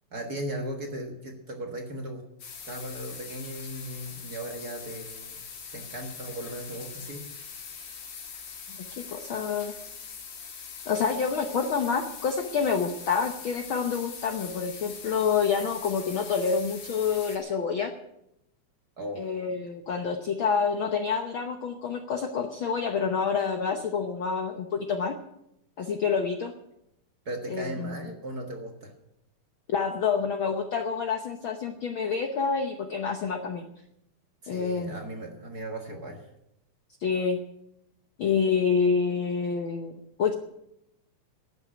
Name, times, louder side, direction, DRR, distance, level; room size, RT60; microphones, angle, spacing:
voice 1, 0.1-2.2 2.7-5.3 5.7-7.2 19.0-19.2 27.3-28.9 34.4-36.2, right 1 dB, 40° right, 2 dB, 1.6 m, -37 dB
sound 1, 2.4-17.4, left 6 dB, 85° left, 3.7 m, -42 dB
voice 2, 8.7-9.7 10.9-17.9 19.1-25.1 25.8-26.5 27.5-28.0 29.7-33.6 34.5-35.0 37.0-37.4 38.2-40.3, left 6 dB, 65° left, 5 dB, 1.3 m, -28 dB
12.0 x 9.1 x 9.7 m, 0.82 s
omnidirectional pair, 3.4 m